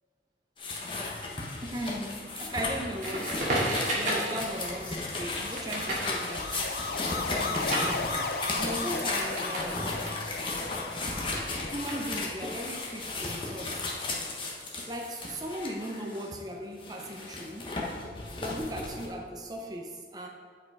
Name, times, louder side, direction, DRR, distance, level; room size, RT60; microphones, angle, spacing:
sound 1, 0.6-16.3 16.8-19.1, left 3 dB, 30° left, 1.1 m, -35 dB
voice 1, 1.6-6.6 7.3-8.2 8.6-10.4 11.7-14.0 14.9-17.8 18.4-20.3, equal, 20° right, 2 dB, 0.6 m, -37 dB
Crackle, 3.0-9.7 10.0-12.4, right 1 dB, 45° right, 2.1 m, -34 dB
sound 2, 4.6-13.9, left 3 dB, 55° left, 0.6 m, -37 dB
8.8 x 5.2 x 4.7 m, 2.1 s
head